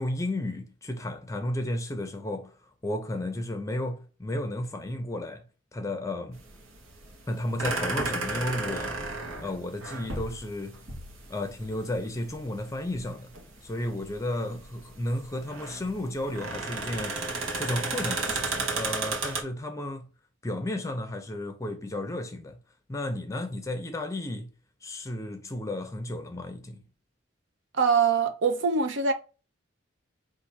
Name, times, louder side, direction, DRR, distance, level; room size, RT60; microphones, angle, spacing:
voice 1, 0.0-2.6 2.8-5.5 5.7-6.4 7.3-9.0 9.4-10.9 11.3-13.3 13.6-17.2 17.6-20.1 20.4-22.6 22.9-24.5 24.8-26.9, left 1 dB, 15° left, 0.5 m, -33 dB
sound 1, 6.3-19.4, right 3 dB, 90° right, 1.1 m, -34 dB
voice 2, 27.7-29.1, right 5 dB, 70° right, 0.7 m, -23 dB
4.3 x 2.6 x 4.1 m
head